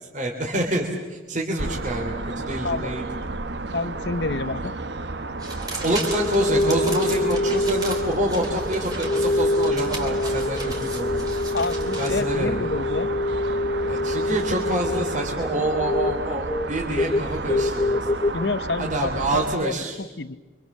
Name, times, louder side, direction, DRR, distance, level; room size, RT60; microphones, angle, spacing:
voice 1, 0.1-3.0 5.8-11.3 12.0-12.7 13.9-18.1 18.8-20.0, right 1 dB, 40° right, 0 dB, 3.4 m, -27 dB
sound 1, 1.6-19.6, right 3 dB, 60° right, 1.2 m, -32 dB
voice 2, 3.7-4.7 11.5-13.1 18.3-20.4, left 3 dB, 60° left, 14 dB, 1.0 m, -29 dB
sound 2, 5.4-12.1, right 2 dB, 20° right, 4.1 m, -36 dB
sound 3, 5.9-18.3, left 2 dB, 25° left, 0.8 m, -26 dB
28.5 x 25.5 x 7.4 m, 1.2 s
head